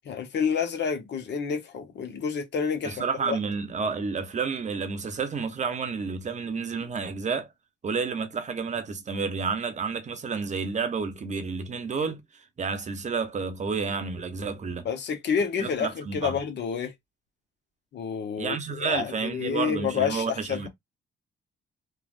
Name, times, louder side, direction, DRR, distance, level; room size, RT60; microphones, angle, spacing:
voice 1, 0.0-3.4 14.8-16.9 17.9-20.7, left 6 dB, 60° left, 1.0 m, -29 dB
voice 2, 2.8-7.5 7.8-14.9 15.6-16.4 18.4-20.7, right 5 dB, 35° right, 0.7 m, -30 dB
3.2 x 2.3 x 2.4 m
cardioid pair, 90°, 20 cm